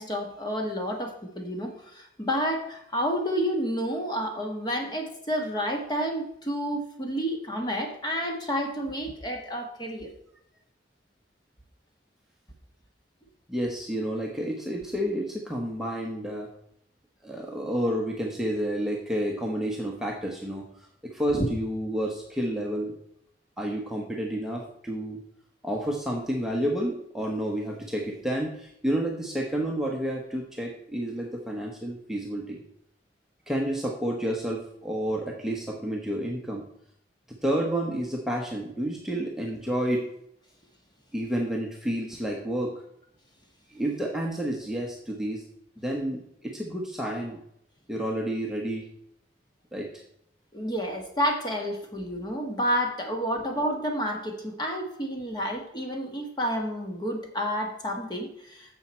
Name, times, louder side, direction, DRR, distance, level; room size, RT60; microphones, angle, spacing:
voice 1, 0.0-10.1 21.3-21.5 50.5-58.8, equal, 25° left, 2 dB, 1.6 m, -30 dB
voice 2, 13.5-16.5 17.2-23.0 23.6-25.2 25.6-32.6 33.5-36.6 37.4-40.1 41.1-42.8 43.7-45.4 45.8-47.4 47.9-48.9 49.7-49.9, right 1 dB, 5° right, -1 dB, 1.0 m, -30 dB
10.5 x 7.0 x 4.3 m, 0.75 s
head